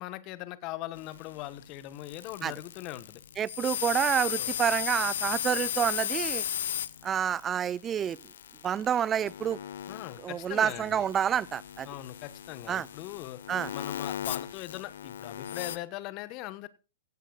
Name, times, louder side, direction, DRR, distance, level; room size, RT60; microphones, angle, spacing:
voice 1, 0.0-3.2 4.4-4.6 9.9-11.0 11.8-13.4 13.7-16.7, left 15 dB, 40° left, 1.3 m, -40 dB
sound 1, 0.9-15.8, left 10 dB, 70° left, 0.9 m, -36 dB
voice 2, 3.4-6.4 7.0-8.2 8.6-9.6 10.2-11.9 12.7-12.9 13.5-13.7, right 9 dB, 25° right, 0.5 m, -28 dB
17.0 x 15.5 x 2.5 m
hypercardioid pair, 110°, 0 cm